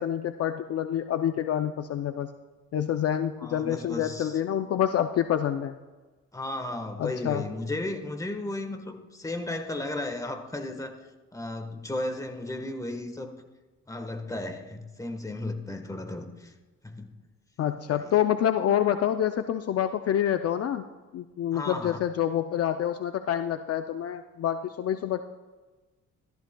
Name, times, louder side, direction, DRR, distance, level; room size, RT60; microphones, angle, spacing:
voice 1, 0.0-2.3 2.7-5.7 7.0-7.4 17.6-20.8 21.1-25.2, left 10 dB, 55° left, 8 dB, 0.5 m, -27 dB
voice 2, 3.4-4.4 6.3-11.0 11.3-13.3 13.9-16.5 16.8-17.1 17.9-18.1 21.5-22.0, left 2 dB, 10° left, 6 dB, 1.3 m, -34 dB
14.0 x 13.5 x 2.2 m, 1.2 s
cardioid pair, 90°, 30 cm